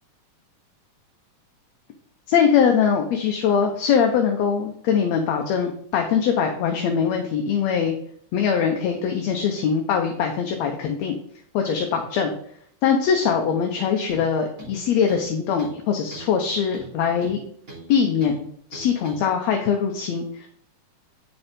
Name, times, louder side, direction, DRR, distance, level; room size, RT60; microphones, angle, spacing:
voice 1, 2.3-8.0 8.3-11.2 11.5-12.3 12.8-17.4 17.9-20.5, left 7 dB, 70° left, 3 dB, 1.9 m, -22 dB
sound 1, 14.1-14.3 14.6-15.3 15.6-15.8 16.1-16.3 16.7-17.9 18.2-18.4 18.7-19.2, right 2 dB, 25° right, 3.5 m, -40 dB
8.3 x 5.4 x 3.6 m, 0.63 s
omnidirectional pair, 3.6 m